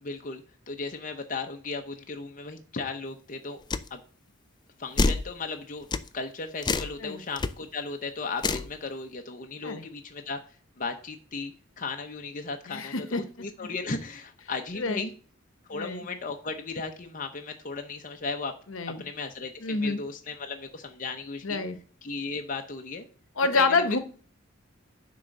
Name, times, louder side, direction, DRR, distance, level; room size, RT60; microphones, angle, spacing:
voice 1, 0.0-3.6 3.9-4.0 4.8-5.9 6.1-10.4 10.8-15.1 15.7-18.5 19.0-21.6 22.0-23.1 23.5-24.0, left 4 dB, 40° left, 4 dB, 0.8 m, -36 dB
sound 1, 3.7-3.9 5.0-5.3 5.9-6.1 6.6-6.9 7.4-7.5 8.4-8.7, left 3 dB, 20° left, 0.4 m, -26 dB
voice 2, 12.7-13.2 14.8-15.1 15.7-16.0 18.7-19.0 19.6-20.0 21.4-21.8 23.4-24.0, left 3 dB, 75° left, 10 dB, 1.1 m, -27 dB
9.9 x 3.8 x 6.5 m, 0.41 s
head